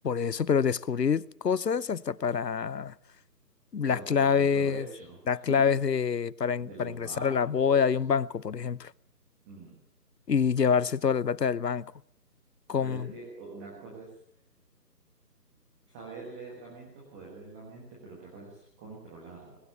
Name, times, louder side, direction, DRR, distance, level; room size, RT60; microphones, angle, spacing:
voice 1, 0.0-2.9 3.7-4.9 5.3-8.9 10.3-11.8 12.7-13.1, left 6 dB, 75° left, 0.9 m, -26 dB
voice 2, 3.9-5.9 6.6-7.9 9.4-9.8 12.8-14.1 15.9-19.6, right 4 dB, 5° right, 1.3 m, -44 dB
20.5 x 16.0 x 8.5 m
figure-of-eight pair, 155°, 49 cm